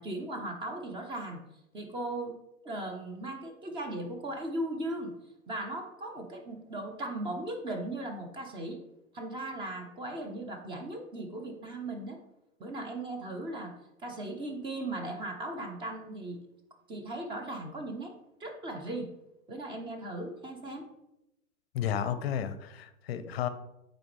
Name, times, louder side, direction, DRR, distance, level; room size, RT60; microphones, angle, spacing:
voice 1, 0.0-1.4 1.7-2.3 2.6-5.1 5.5-8.8 9.1-12.2 12.6-13.7 14.0-16.4 16.9-18.1 18.4-19.1 19.5-20.9, right 1 dB, 10° right, 4 dB, 0.7 m, -37 dB
voice 2, 21.7-23.5, left 9 dB, 45° left, 12 dB, 0.6 m, -32 dB
8.5 x 4.0 x 3.2 m, 0.89 s
figure-of-eight pair, 115°, 42 cm